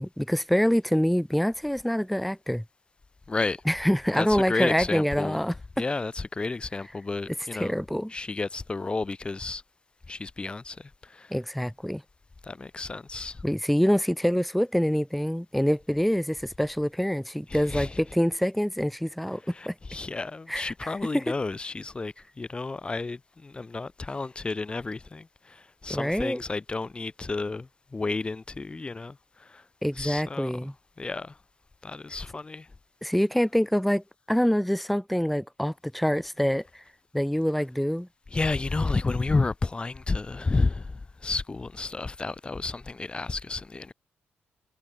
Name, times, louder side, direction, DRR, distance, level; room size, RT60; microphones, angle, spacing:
voice 1, 0.0-2.6 3.7-5.5 7.6-8.1 11.3-12.0 13.4-19.7 20.5-20.7 21.1-21.2 25.9-26.4 29.8-30.7 33.0-36.8 37.1-38.1, equal, ahead, 0.5 m, -25 dB
voice 2, 3.3-3.6 4.2-5.4 5.8-7.7 8.1-9.6 10.1-11.3 12.4-13.4 17.5-18.0 19.5-29.6 30.0-30.7 31.0-31.4 31.8-32.7 38.3-43.9, left 3 dB, 25° left, 0.9 m, -31 dB
cardioid pair, 95°, 4 cm